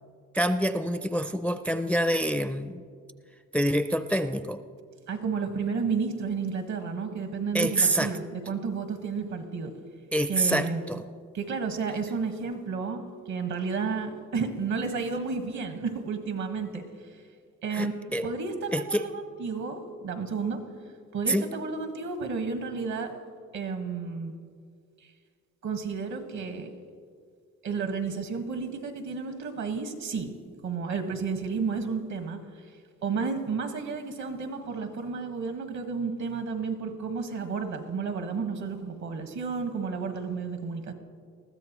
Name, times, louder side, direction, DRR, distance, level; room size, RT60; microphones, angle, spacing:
voice 1, 0.3-2.8 3.5-4.6 7.5-8.1 10.1-11.1 17.7-18.3 18.7-19.1 21.3-21.5, right 1 dB, 5° left, 10 dB, 0.4 m, -26 dB
voice 2, 5.1-9.7 10.3-10.8 11.3-16.8 17.6-20.6 21.1-23.2 23.5-24.3 25.6-26.7 27.6-30.3 30.6-32.4 33.0-40.9, right 5 dB, 70° right, 6 dB, 1.7 m, -32 dB
20.5 x 14.0 x 3.1 m, 2.1 s
cardioid pair, 90°, 30 cm